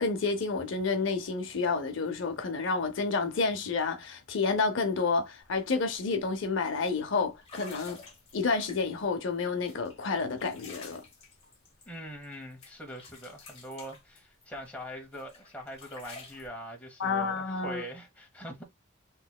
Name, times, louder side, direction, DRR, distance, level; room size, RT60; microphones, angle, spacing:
voice 1, 0.0-8.0 8.3-11.0 17.0-17.8, left 4 dB, 60° left, 0.6 m, -30 dB
sound 1, 5.4-5.6 5.9-6.2 6.8-6.9 7.4-9.1 9.7-12.4 12.6-14.7 15.1-16.5, left 4 dB, 30° left, 1.3 m, -50 dB
voice 2, 11.9-18.6, equal, 5° left, 0.9 m, -42 dB
3.9 x 3.0 x 2.3 m
head